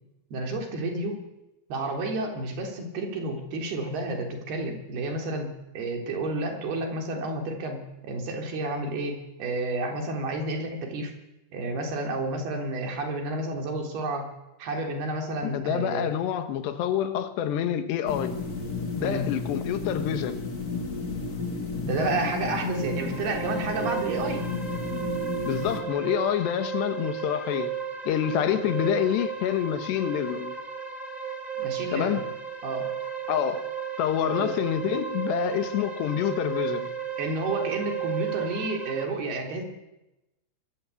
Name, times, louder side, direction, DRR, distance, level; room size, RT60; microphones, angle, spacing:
voice 1, 0.3-1.2 1.7-11.1 11.5-14.3 14.6-16.1 19.0-19.3 21.8-24.5 31.6-32.3 32.6-32.9 34.4-34.5 37.2-39.6, right 2 dB, 70° right, 5.5 m, -30 dB
voice 2, 15.4-18.4 19.0-20.4 25.4-27.7 28.1-30.5 31.9-32.2 33.3-33.7 34.0-36.9, left 10 dB, 90° left, 3.6 m, -27 dB
sound 1, 18.1-25.8, left 4 dB, 25° left, 2.6 m, -32 dB
sound 2, 22.7-39.0, right 8 dB, 15° right, 1.7 m, -34 dB
24.5 x 21.0 x 8.4 m
omnidirectional pair, 4.7 m